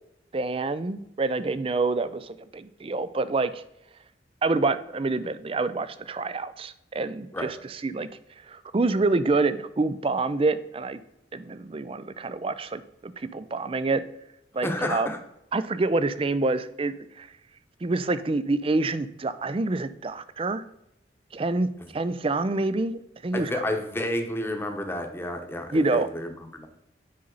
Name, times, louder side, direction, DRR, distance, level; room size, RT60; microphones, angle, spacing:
voice 1, 0.3-3.6 4.4-8.1 8.5-11.0 11.3-14.0 14.5-15.1 15.5-17.3 17.8-20.6 21.3-23.6 25.7-26.1, right 3 dB, 30° right, 14 dB, 0.4 m, -27 dB
voice 2, 14.6-15.2 23.3-26.7, left 1 dB, 15° left, 5 dB, 1.0 m, -30 dB
9.6 x 5.5 x 3.9 m, 0.85 s
head